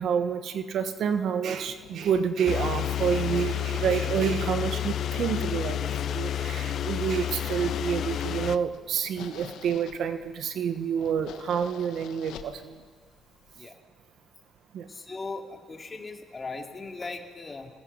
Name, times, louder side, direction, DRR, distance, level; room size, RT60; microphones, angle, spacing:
voice 1, 0.0-12.8 14.7-14.9, right 7 dB, 70° right, 9 dB, 1.4 m, -28 dB
sound 1, 1.6-13.6, left 9 dB, 85° left, 1.5 m, -48 dB
sound 2, 2.4-8.6, left 10 dB, 60° left, 0.5 m, -30 dB
voice 2, 14.9-17.7, left 3 dB, 30° left, 3 dB, 2.8 m, -38 dB
26.5 x 20.0 x 5.7 m, 1.5 s
cardioid pair, 90°, 0 cm